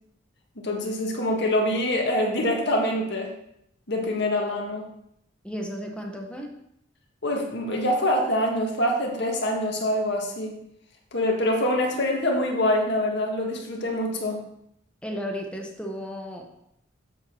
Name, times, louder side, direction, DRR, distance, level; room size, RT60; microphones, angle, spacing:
voice 1, 0.6-3.3 3.9-4.9 7.2-10.6 11.1-14.4, left 1 dB, 60° left, 0 dB, 1.7 m, -25 dB
voice 2, 5.4-6.6 15.0-16.4, equal, 5° left, 1 dB, 0.9 m, -34 dB
7.7 x 4.5 x 6.2 m, 0.77 s
head